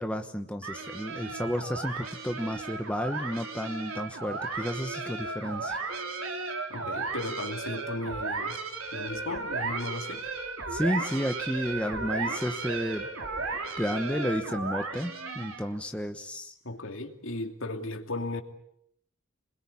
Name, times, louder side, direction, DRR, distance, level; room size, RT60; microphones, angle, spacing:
voice 1, 0.0-5.8 10.7-13.1 13.8-16.5, equal, 5° left, 1.1 m, -32 dB
sound 1, 0.6-15.8, right 3 dB, 85° right, 3.9 m, -35 dB
voice 2, 6.7-8.6 8.9-10.2 16.6-18.4, left 2 dB, 70° left, 2.7 m, -35 dB
27.5 x 21.0 x 8.5 m
head